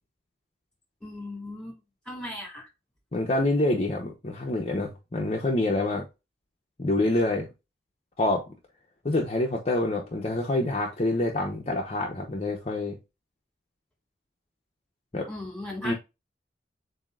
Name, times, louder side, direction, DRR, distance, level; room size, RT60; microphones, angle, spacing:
voice 1, 1.0-1.8 2.1-2.7 15.3-15.9, left 1 dB, 5° left, 2.1 m, -37 dB
voice 2, 3.1-6.0 6.8-7.5 8.2-8.5 9.0-13.0 15.1-15.3 15.8-15.9, left 2 dB, 35° left, 0.8 m, -26 dB
7.2 x 2.8 x 2.4 m
head